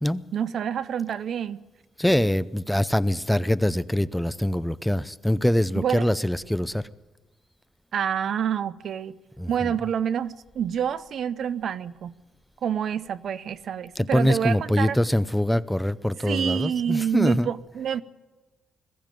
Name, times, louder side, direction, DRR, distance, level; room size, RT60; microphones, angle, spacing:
voice 1, 0.3-1.6 5.8-6.1 7.9-9.2 9.5-12.1 12.6-15.0 16.2-18.0, right 8 dB, 60° right, 0.7 m, -27 dB
voice 2, 2.0-6.8 9.4-9.7 14.0-17.5, left 1 dB, 5° left, 0.6 m, -24 dB
21.0 x 14.5 x 9.1 m
cardioid pair, 90°, 0 cm